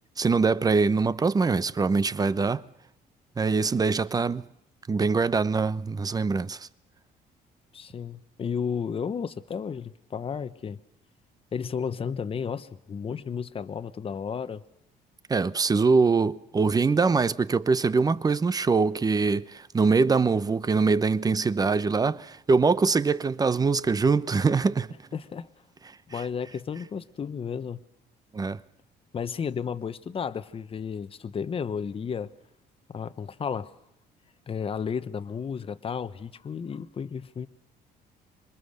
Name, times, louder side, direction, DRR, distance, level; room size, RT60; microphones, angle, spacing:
voice 1, 0.2-2.6 3.4-4.4 4.9-6.7 15.3-24.9 26.1-26.2 28.3-28.6, right 4 dB, 20° right, 0.8 m, -23 dB
voice 2, 7.7-10.8 11.5-14.6 25.1-25.5 26.1-27.8 29.1-32.3 32.9-33.7 34.5-37.5, left 6 dB, 35° left, 1.1 m, -33 dB
26.5 x 23.0 x 6.6 m
cardioid pair, 110°, 17 cm